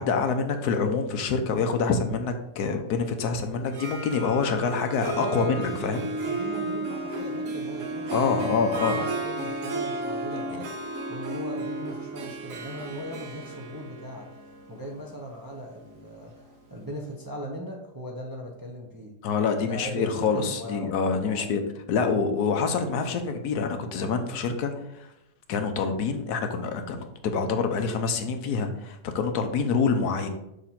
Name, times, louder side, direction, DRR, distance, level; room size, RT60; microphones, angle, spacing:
voice 1, 0.0-6.1 8.1-9.0 19.2-21.6 21.9-25.1 25.5-30.3, left 5 dB, 75° left, 6 dB, 1.3 m, -26 dB
Harp, 3.6-16.5, right 2 dB, 60° right, 1.1 m, -33 dB
voice 2, 5.2-14.4 14.7-19.1 19.6-20.9 21.2-21.5, equal, 25° right, -1 dB, 0.4 m, -38 dB
6.5 x 2.9 x 5.8 m, 0.86 s
omnidirectional pair, 1.7 m